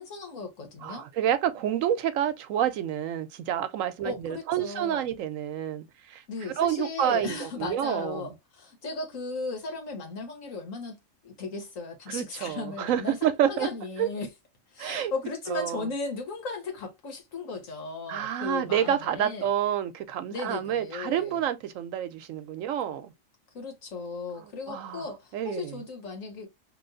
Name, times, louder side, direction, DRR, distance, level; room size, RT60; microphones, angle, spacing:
voice 1, 0.0-1.1 4.0-5.0 6.3-11.0 11.2-14.3 14.7-19.5 20.3-21.4 23.5-26.5, left 4 dB, 85° left, 1.6 m, -36 dB
voice 2, 0.8-6.2 6.6-8.3 12.1-13.7 14.0-14.1 14.8-15.1 15.5-15.9 18.1-23.1 24.4-25.1 25.3-25.8, right 10 dB, 90° right, 1.1 m, -28 dB
3.1 x 2.9 x 2.5 m
omnidirectional pair, 1.3 m